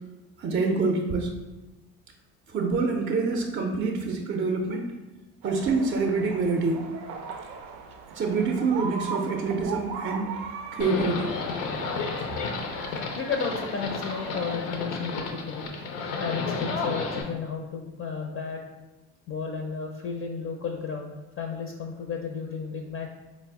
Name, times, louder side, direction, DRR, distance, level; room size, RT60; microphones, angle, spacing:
voice 1, 0.4-1.3 2.5-4.9 5.4-6.8 8.1-10.4 10.8-11.3, right 4 dB, 30° right, 1 dB, 0.4 m, -26 dB
sound 1, 5.4-14.6, right 5 dB, 90° right, 0.5 m, -39 dB
Livestock farm animals working animals, 10.8-17.2, left 4 dB, 85° left, 0.6 m, -32 dB
voice 2, 13.2-15.7 16.2-18.6 19.3-23.1, left 5 dB, 35° left, 2 dB, 0.4 m, -33 dB
4.0 x 2.0 x 3.4 m, 1.1 s
supercardioid pair, 75°, 37 cm